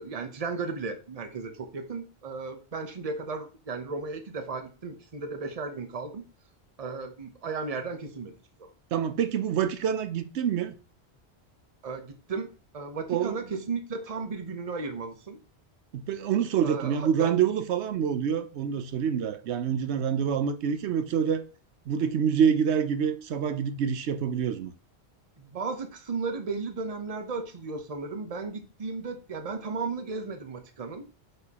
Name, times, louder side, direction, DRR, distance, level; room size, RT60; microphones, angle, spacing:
voice 1, 0.0-6.2 6.8-8.3 8.6-8.7 11.8-15.4 16.6-17.3 25.4-31.1, right 4 dB, 35° right, 0.9 m, -35 dB
voice 2, 8.9-10.7 13.1-13.3 15.9-21.4 21.9-24.7, right 8 dB, 85° right, 0.9 m, -26 dB
8.0 x 5.4 x 2.9 m
omnidirectional pair, 1.1 m